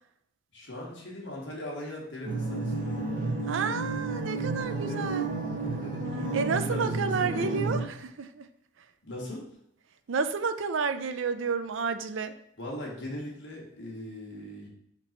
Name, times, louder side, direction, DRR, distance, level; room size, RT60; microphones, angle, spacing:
voice 1, 0.5-3.0 4.6-7.5 9.0-9.6 12.6-14.7, left 1 dB, 65° left, -3 dB, 1.9 m, -40 dB
sound 1, 2.3-7.8, right 3 dB, 45° right, 1.3 m, -31 dB
voice 2, 3.5-5.3 6.3-8.5 10.1-12.3, right 5 dB, 75° right, 10 dB, 0.5 m, -30 dB
5.1 x 4.4 x 4.4 m, 0.75 s
head